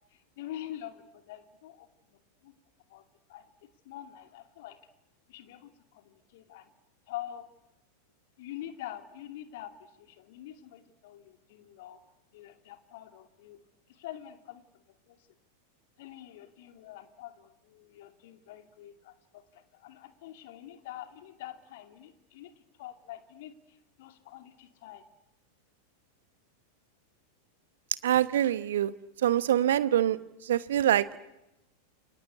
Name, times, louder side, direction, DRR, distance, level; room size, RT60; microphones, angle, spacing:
voice 1, 0.1-1.9 2.4-2.5 2.9-3.0 3.3-3.5 3.8-4.8 5.3-6.7 7.1-7.5 8.4-12.0 12.3-13.6 13.9-15.2 16.0-22.5 22.8-25.0, left 12 dB, 50° left, 8 dB, 2.6 m, -45 dB
voice 2, 28.0-28.9 29.2-31.2, right 11 dB, 60° right, 16 dB, 1.2 m, -25 dB
29.0 x 24.5 x 8.4 m, 0.95 s
figure-of-eight pair, 90°, 0 cm